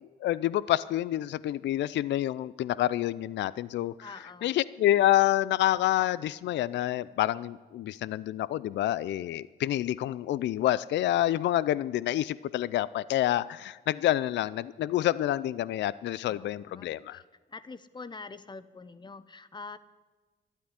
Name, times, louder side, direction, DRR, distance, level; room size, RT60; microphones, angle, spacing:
voice 1, 0.0-4.1 4.4-17.2, left 13 dB, 65° left, 19 dB, 0.4 m, -28 dB
voice 2, 4.0-4.6 16.3-17.2 17.5-19.8, left 4 dB, 20° left, 15 dB, 0.8 m, -45 dB
13.0 x 11.5 x 9.8 m, 1.3 s
cardioid pair, 90°, 20 cm